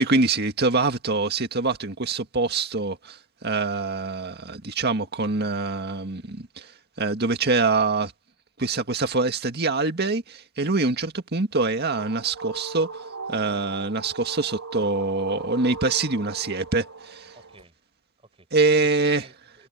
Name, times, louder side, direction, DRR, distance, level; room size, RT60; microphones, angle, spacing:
voice 1, 0.0-6.7 7.0-8.1 8.6-13.0 13.3-17.3 18.5-19.2, right 3 dB, 50° right, 2.0 m, -24 dB
sound 1, 11.5-17.6, right 4 dB, 75° right, 3.5 m, -39 dB
voice 2, 17.3-17.8 18.2-19.7, right 3 dB, 25° right, 6.4 m, -53 dB
head